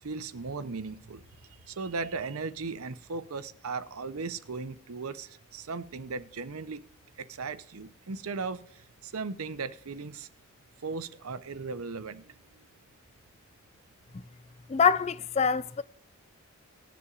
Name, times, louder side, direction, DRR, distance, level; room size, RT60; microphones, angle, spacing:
voice 1, 0.0-1.2 1.6-6.8 7.2-10.3 10.8-12.6, right 4 dB, 85° right, 0.7 m, -37 dB
voice 2, 14.7-15.8, left 6 dB, 30° left, 0.3 m, -24 dB
19.5 x 6.9 x 2.5 m
head